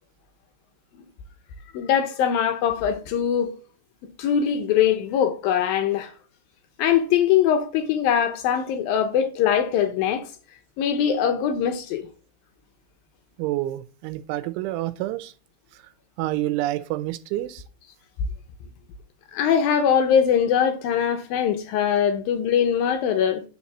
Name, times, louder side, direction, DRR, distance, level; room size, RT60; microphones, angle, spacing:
voice 1, 1.7-3.5 4.2-6.1 6.8-10.3 10.8-12.1 19.3-23.4, left 8 dB, 90° left, 2.0 m, -22 dB
voice 2, 13.4-15.3 15.7-15.8 16.2-17.6, right 15 dB, 80° right, 3.0 m, -28 dB
10.0 x 4.2 x 7.1 m
omnidirectional pair, 5.6 m